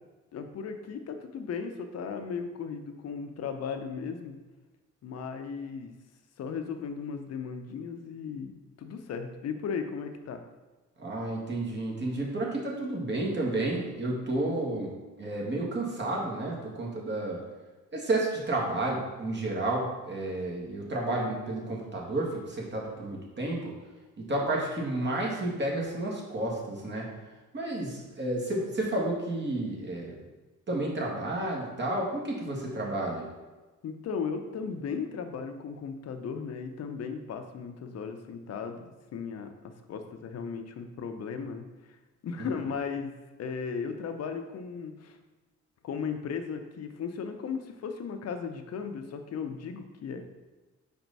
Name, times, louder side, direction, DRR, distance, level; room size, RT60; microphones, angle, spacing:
voice 1, 0.3-4.4 5.0-5.9 6.4-10.4 33.8-38.8 39.1-39.5 39.9-41.6 42.2-43.1 43.4-45.2 45.8-50.3, left 6 dB, 55° left, 6 dB, 0.8 m, -36 dB
voice 2, 11.0-14.9 15.2-17.4 17.9-23.7 24.2-27.1 27.5-30.2 30.7-33.2, right 2 dB, 35° right, -2 dB, 1.8 m, -31 dB
5.1 x 4.6 x 4.0 m, 1.2 s
cardioid pair, 90°, 30 cm